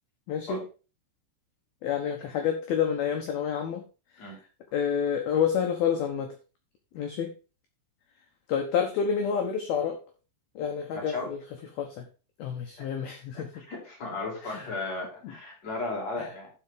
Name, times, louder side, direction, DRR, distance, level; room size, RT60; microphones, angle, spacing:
voice 1, 0.3-0.6 1.8-3.9 4.1-4.3 4.7-6.4 6.9-7.3 8.5-10.0 10.6-11.4 11.8-12.1 12.4-13.6 14.4-14.7 15.2-15.3 16.2-16.3, left 7 dB, 70° left, 3 dB, 2.4 m, -29 dB
voice 2, 10.9-11.3 12.8-12.9 13.3-16.5, left 2 dB, 35° left, -3 dB, 6.2 m, -35 dB
12.0 x 5.2 x 5.1 m, 0.33 s
omnidirectional pair, 5.8 m